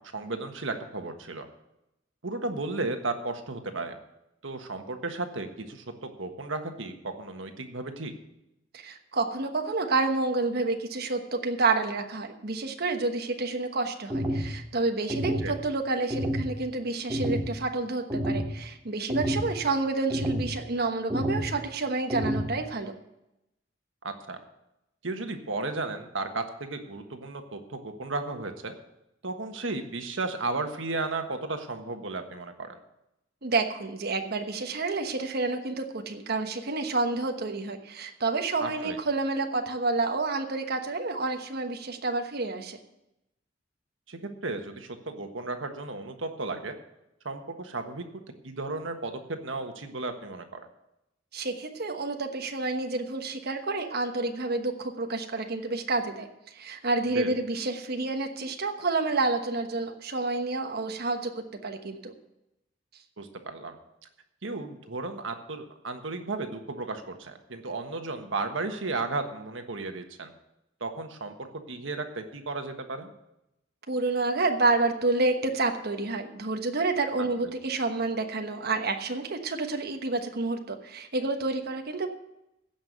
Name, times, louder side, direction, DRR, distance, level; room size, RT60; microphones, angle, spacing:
voice 1, 0.1-1.5 2.2-4.0 4.4-8.1 15.4-15.5 24.0-24.4 25.0-28.7 29.2-32.8 38.6-39.0 44.1-46.8 47.2-48.0 48.4-50.7 57.1-57.3 63.2-63.8 64.4-70.3 70.8-73.1 77.4-77.5, right 3 dB, 85° right, 6 dB, 1.4 m, -34 dB
voice 2, 8.7-22.9 33.4-42.8 51.3-56.3 56.5-61.3 61.6-62.1 73.9-82.1, right 3 dB, 55° right, 5 dB, 1.2 m, -29 dB
sound 1, 14.1-14.5 15.1-15.5 16.1-16.5 17.1-17.5 18.1-18.5 19.1-19.5 20.1-20.5 21.1-21.5 22.1-22.5, equal, 20° right, 2.0 m, -28 dB
15.5 x 5.7 x 8.0 m, 0.89 s
head